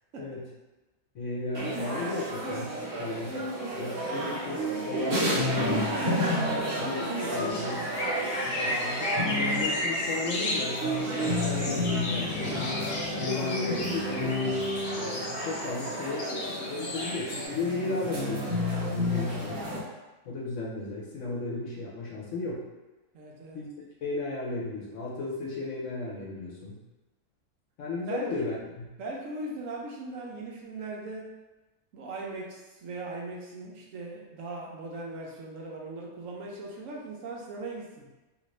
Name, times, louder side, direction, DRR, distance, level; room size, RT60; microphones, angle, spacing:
voice 1, 1.1-3.4 3.8-4.6 4.9-5.5 6.8-7.8 8.5-10.8 11.2-14.4 14.9-19.6 20.2-22.6 23.5-23.7 24.0-26.8 27.8-28.8, left 2 dB, 65° left, -4 dB, 1.0 m, -35 dB
sound 1, 1.5-19.8, equal, 50° right, 1.1 m, -31 dB
voice 2, 4.0-6.9 7.3-8.3 19.1-19.4 23.1-23.6 28.1-28.5 29.0-31.3 31.9-38.1, right 2 dB, 70° right, -2 dB, 1.0 m, -40 dB
sound 2, 7.5-17.5, left 2 dB, 85° left, 1.2 m, -34 dB
2.8 x 2.5 x 3.1 m, 1.1 s
omnidirectional pair, 1.4 m